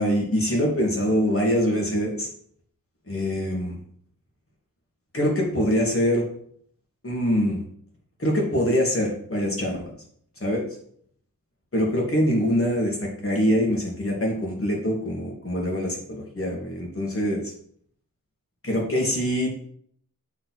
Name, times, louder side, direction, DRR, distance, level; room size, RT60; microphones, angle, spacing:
voice 1, 0.0-2.3 3.1-3.7 5.1-6.2 7.0-7.6 8.2-9.9 10.4-10.6 11.7-17.4 18.6-19.5, equal, 40° left, -2 dB, 2.6 m, -24 dB
7.5 x 4.7 x 4.2 m, 0.63 s
wide cardioid pair, 65°, 35 cm